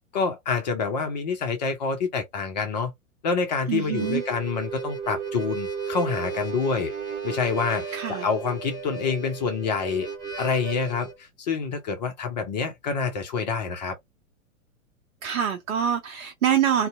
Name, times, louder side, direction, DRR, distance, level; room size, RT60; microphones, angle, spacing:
voice 1, 0.1-2.9 3.2-6.9 7.2-10.1 10.4-13.9, left 5 dB, 35° left, 0.5 m, -27 dB
voice 2, 3.7-4.2 7.9-8.3 15.2-16.9, right 9 dB, 65° right, 0.6 m, -25 dB
Harmonica, 3.8-11.1, right 5 dB, 25° right, 0.9 m, -34 dB
2.6 x 2.0 x 2.3 m
figure-of-eight pair, 110°, 42 cm